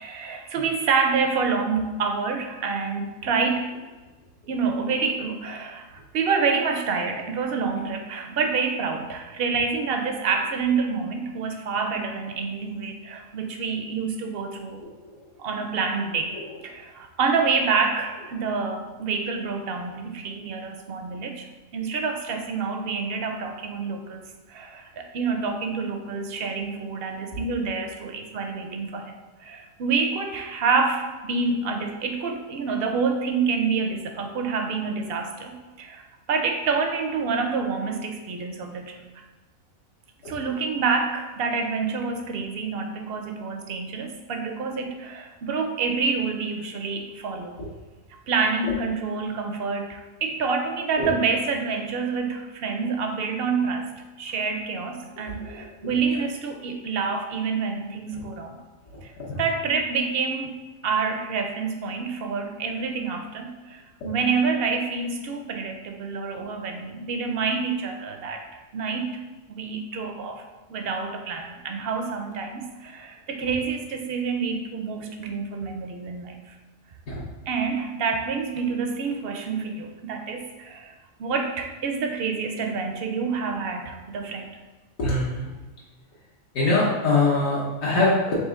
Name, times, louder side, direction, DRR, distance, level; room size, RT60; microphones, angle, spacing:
voice 1, 0.0-3.7 4.5-14.8 15.4-21.5 21.7-29.1 29.4-39.2 40.3-47.5 48.3-53.9 54.2-58.6 59.0-59.1 59.4-68.5 68.7-69.2 69.5-70.4 70.7-76.6 77.5-80.9 81.2-84.6, right 5 dB, 65° right, 4 dB, 0.6 m, -27 dB
voice 2, 14.8-15.2 16.3-16.4 40.2-40.3 47.6-47.7 51.0-51.1 58.9-59.4 77.1-77.2 85.0-85.5 86.5-88.3, left 2 dB, 75° left, -6 dB, 1.4 m, -24 dB
4.2 x 3.2 x 3.6 m, 1.2 s
omnidirectional pair, 1.4 m